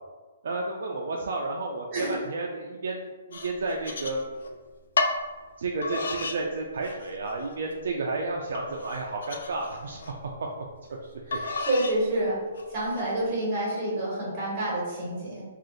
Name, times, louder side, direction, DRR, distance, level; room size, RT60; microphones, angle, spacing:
voice 1, 0.4-4.5 5.6-10.0 10.4-10.5 11.1-11.4, right 3 dB, 65° right, 0 dB, 0.4 m, -32 dB
sound 1, 3.3-4.5 5.0-5.2 5.8-6.4 6.8-7.3 7.8-7.9 8.5-10.1 11.3-12.0 12.6-13.0, left 3 dB, 75° left, 0.4 m, -32 dB
voice 2, 11.3-12.4 12.7-15.4, right 1 dB, 25° right, -6 dB, 1.4 m, -28 dB
2.5 x 2.4 x 3.8 m, 1.4 s
hypercardioid pair, 165°, 0 cm